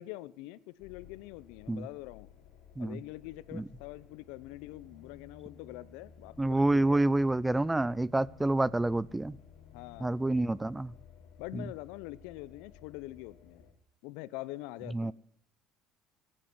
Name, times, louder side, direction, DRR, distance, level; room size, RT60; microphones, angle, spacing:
voice 1, 0.0-2.3 2.8-7.0 9.7-10.1 11.4-13.6 14.0-15.1, left 17 dB, 90° left, 0.6 m, -44 dB
sound 1, 0.8-13.7, left 7 dB, 75° left, 3.0 m, -56 dB
sound 2, 4.4-10.4, left 6 dB, 40° left, 1.5 m, -60 dB
voice 2, 6.4-9.4 10.0-10.9 11.5-11.6 14.9-15.1, right 2 dB, 10° right, 0.4 m, -28 dB
16.0 x 8.9 x 6.0 m
cardioid pair, 125°, 0 cm